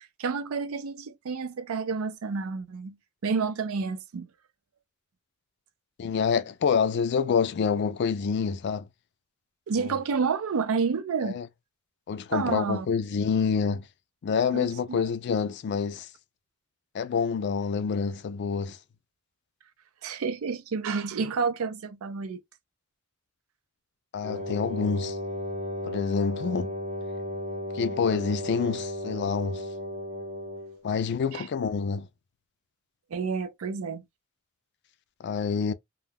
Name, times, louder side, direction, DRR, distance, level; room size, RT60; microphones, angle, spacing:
voice 1, 0.0-3.0 3.2-4.3 9.7-11.4 12.3-12.9 14.5-15.0 20.0-22.4 31.3-31.5 33.1-34.0, right 5 dB, 70° right, 0.4 m, -30 dB
voice 2, 6.0-8.9 9.8-10.0 11.2-11.5 12.1-13.9 14.2-16.1 16.9-18.8 24.1-25.2 25.8-26.7 27.7-29.6 30.8-32.1 35.2-35.7, left 6 dB, 50° left, 0.3 m, -27 dB
Wind instrument woodwind instrument, 24.2-30.8, left 1 dB, 35° right, 0.7 m, -34 dB
2.2 x 2.2 x 3.4 m
head